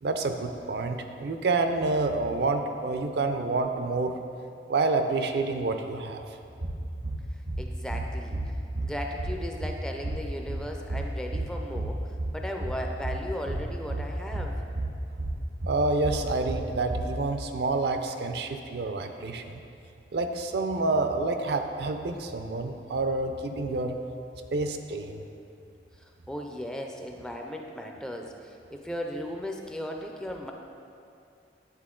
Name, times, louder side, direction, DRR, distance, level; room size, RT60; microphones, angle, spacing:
voice 1, 0.0-4.1 4.7-6.2 15.7-19.6 20.1-23.9 24.5-25.2, right 3 dB, 65° right, 6 dB, 0.4 m, -28 dB
sound 1, 6.4-17.2, right 1 dB, 90° right, 1.3 m, -33 dB
voice 2, 7.6-8.4 8.8-14.6 26.0-30.5, equal, 5° left, 2 dB, 0.4 m, -36 dB
9.6 x 4.2 x 3.7 m, 2.5 s
head